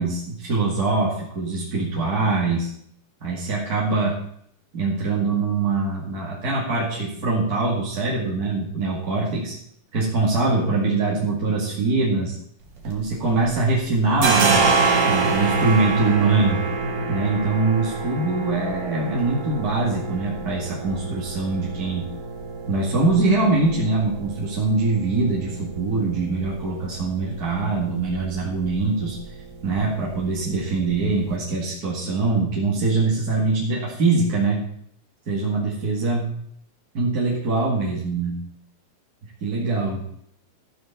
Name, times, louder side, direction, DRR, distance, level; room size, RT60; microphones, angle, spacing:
voice 1, 0.0-2.7 3.2-4.2 4.7-9.5 9.9-12.4 12.8-16.6 17.1-22.1 22.7-29.2 29.6-34.6 35.3-36.3 36.9-38.4 39.4-40.0, right 3 dB, 30° right, -4 dB, 2.3 m, -23 dB
sound 1, 12.6-13.6 13.8-31.3, right 4 dB, 60° right, 3.6 m, -27 dB
13.5 x 6.4 x 6.9 m, 0.68 s
omnidirectional pair, 4.1 m